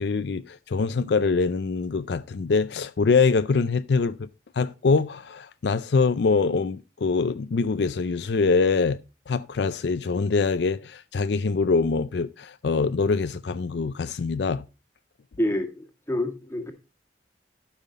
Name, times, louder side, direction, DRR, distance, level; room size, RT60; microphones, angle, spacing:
voice 1, 0.0-4.3 4.6-9.0 9.3-14.7, left 4 dB, 65° left, 0.4 m, -24 dB
voice 2, 15.4-16.7, left 1 dB, 15° left, 1.7 m, -28 dB
12.5 x 5.8 x 4.0 m
head